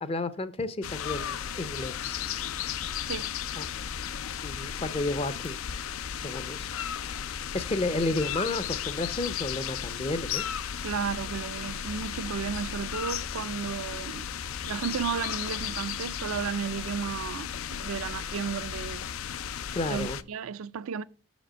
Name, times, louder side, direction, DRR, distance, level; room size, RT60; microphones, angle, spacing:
voice 1, 0.0-2.2 3.6-3.7 4.4-5.6 6.2-6.7 7.0-10.4 19.7-20.2, left 2 dB, 25° left, 0.5 m, -32 dB
sound 1, 0.8-20.2, left 8 dB, 80° left, 0.4 m, -35 dB
voice 2, 10.8-14.3 14.7-19.1 19.9-21.0, right 6 dB, 85° right, 0.4 m, -33 dB
6.8 x 5.1 x 6.2 m
head